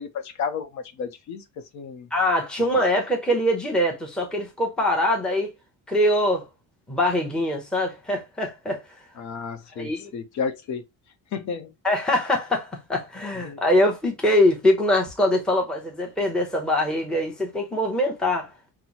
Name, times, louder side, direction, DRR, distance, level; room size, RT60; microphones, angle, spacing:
voice 1, 0.0-1.4 1.7-2.1 9.2-10.8 11.3-11.7 13.4-13.6, left 6 dB, 55° left, 0.8 m, -32 dB
voice 2, 2.1-5.5 5.9-6.4 6.9-8.8 9.8-10.1 11.8-18.5, left 1 dB, 5° left, 0.7 m, -23 dB
5.8 x 2.0 x 2.8 m
cardioid pair, 165°, 33 cm